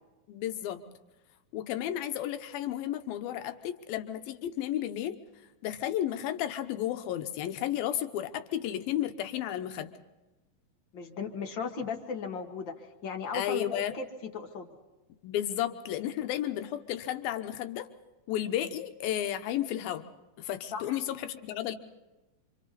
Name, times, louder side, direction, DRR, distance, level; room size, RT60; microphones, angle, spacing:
voice 1, 0.3-0.8 1.5-5.2 5.6-9.9 13.3-14.0 15.2-17.9 18.3-20.1 20.4-21.8, left 11 dB, 80° left, 8 dB, 2.8 m, -33 dB
voice 2, 10.9-14.0 14.3-14.7 20.7-21.0, left 5 dB, 50° left, 5 dB, 1.4 m, -36 dB
27.5 x 26.0 x 4.2 m, 1.1 s
omnidirectional pair, 4.2 m